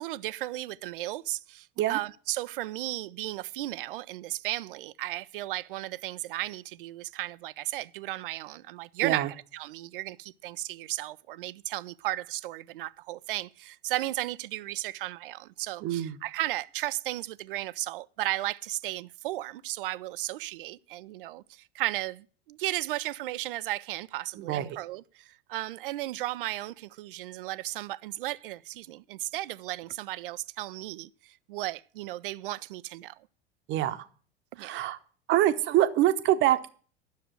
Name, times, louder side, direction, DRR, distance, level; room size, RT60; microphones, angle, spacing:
voice 1, 0.0-33.1 34.5-34.8, right 16 dB, 60° right, 0.6 m, -35 dB
voice 2, 15.8-16.2 24.4-24.8 33.7-34.0 34.6-35.0 35.3-36.7, right 13 dB, 40° right, 1.0 m, -25 dB
10.5 x 6.6 x 7.7 m
figure-of-eight pair, 80°, 31 cm